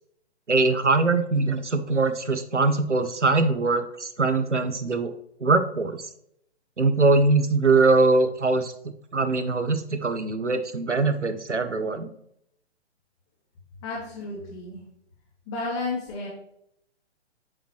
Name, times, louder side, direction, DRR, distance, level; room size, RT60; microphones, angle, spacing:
voice 1, 0.5-5.1 5.4-6.1 6.8-12.1, right 3 dB, 85° right, 9 dB, 0.9 m, -22 dB
voice 2, 13.8-14.8 15.5-16.3, left 3 dB, 20° left, -8 dB, 2.3 m, -32 dB
7.3 x 5.1 x 3.1 m, 0.74 s
figure-of-eight pair, 130°, 35 cm